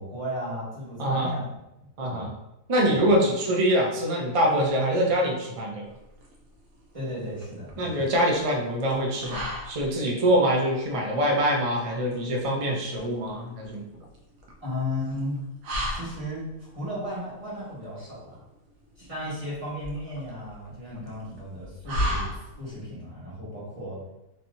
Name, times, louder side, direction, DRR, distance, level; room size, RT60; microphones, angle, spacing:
voice 1, 0.0-1.4 2.0-2.3 2.8-3.1 6.9-8.1 14.6-15.4 15.9-18.4 19.0-24.0, left 1 dB, 25° right, -10 dB, 1.5 m, -35 dB
voice 2, 1.0-1.3 2.0-2.3 2.7-5.9 7.8-13.8, equal, 45° right, -1 dB, 0.4 m, -24 dB
sound 1, 5.9-22.9, equal, 70° right, 1.0 m, -37 dB
3.2 x 2.8 x 2.6 m, 0.89 s
omnidirectional pair, 1.5 m